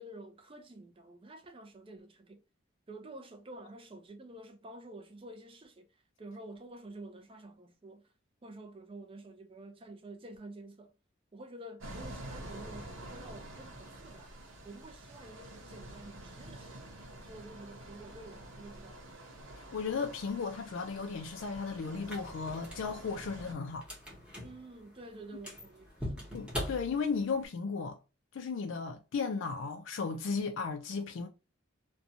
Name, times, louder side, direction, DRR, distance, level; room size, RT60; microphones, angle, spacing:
voice 1, 0.0-2.4 2.9-5.9 6.2-8.1 8.4-10.9 11.3-14.3 14.6-16.9 17.2-19.2 24.4-26.3, right 1 dB, 25° right, 0.5 m, -49 dB
sound 1, 11.8-23.5, right 1 dB, 80° right, 0.8 m, -48 dB
voice 2, 19.6-23.9 26.3-28.0 28.3-31.3, left 5 dB, 70° left, 0.4 m, -35 dB
sound 2, 21.9-27.5, equal, 5° right, 1.0 m, -43 dB
2.6 x 2.2 x 2.7 m
head